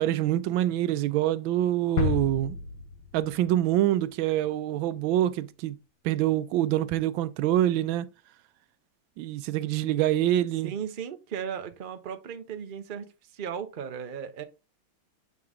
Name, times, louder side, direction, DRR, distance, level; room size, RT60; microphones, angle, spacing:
voice 1, 0.0-2.6 3.1-5.8 6.0-8.1 9.2-10.7, right 13 dB, 90° right, 1.3 m, -25 dB
sound 1, 2.0-3.9 4.3-4.4, left 5 dB, 70° left, 1.5 m, -31 dB
voice 2, 10.6-14.4, right 7 dB, 65° right, 0.5 m, -36 dB
8.4 x 3.8 x 3.6 m
omnidirectional pair, 2.1 m